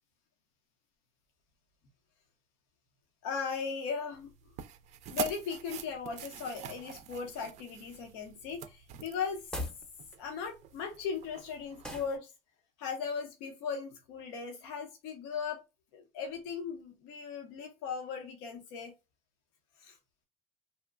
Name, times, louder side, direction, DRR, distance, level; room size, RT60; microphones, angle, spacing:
voice 1, 3.2-4.3 5.1-9.5 10.2-12.3 12.8-15.6 15.9-18.9 19.8-20.0, left 6 dB, 80° left, 0.7 m, -38 dB
sound 1, 4.1-12.2, right 9 dB, 50° right, 0.4 m, -45 dB
sound 2, 9.5-9.8 11.8-12.2, left 1 dB, 5° left, 0.7 m, -38 dB
2.8 x 2.1 x 2.4 m
supercardioid pair, 95°, 15 cm